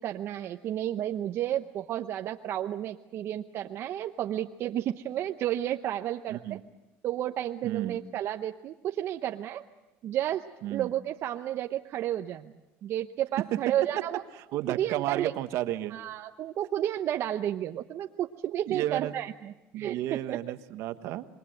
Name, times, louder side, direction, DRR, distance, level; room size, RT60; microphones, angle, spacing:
voice 1, 0.0-6.6 7.0-9.6 10.0-12.5 12.8-14.2 14.7-15.3 15.9-20.4, right 11 dB, 55° right, 5 dB, 0.8 m, -32 dB
voice 2, 6.3-6.6 7.6-8.0 10.6-10.9 14.0-14.1 14.5-16.0 18.7-19.1 19.7-21.3, right 14 dB, 70° right, 10 dB, 1.3 m, -32 dB
27.0 x 22.0 x 7.9 m, 0.99 s
cardioid pair, 115°, 5 cm